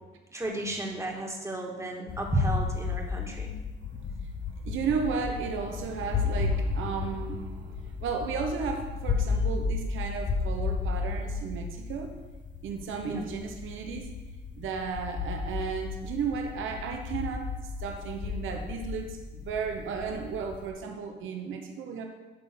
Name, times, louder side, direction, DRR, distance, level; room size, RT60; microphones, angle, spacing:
voice 1, 0.3-3.5 13.1-13.2, right 2 dB, 15° right, 0 dB, 1.9 m, -32 dB
sound 1, 2.1-20.7, left 4 dB, 40° left, 0.9 m, -33 dB
voice 2, 4.6-12.1 12.6-14.1 14.5-22.1, right 5 dB, 80° right, 3 dB, 1.1 m, -34 dB
11.5 x 3.9 x 6.1 m, 1.2 s
cardioid pair, 90°, 20 cm